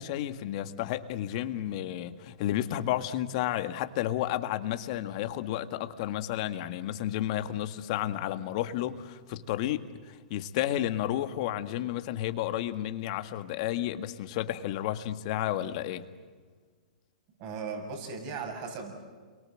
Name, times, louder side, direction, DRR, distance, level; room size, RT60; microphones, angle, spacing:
voice 1, 0.0-16.0, left 12 dB, 50° left, 10 dB, 1.8 m, -32 dB
voice 2, 17.4-19.0, right 5 dB, 45° right, 4 dB, 7.2 m, -37 dB
30.0 x 23.5 x 7.7 m, 1.5 s
hypercardioid pair, 130°, 4 cm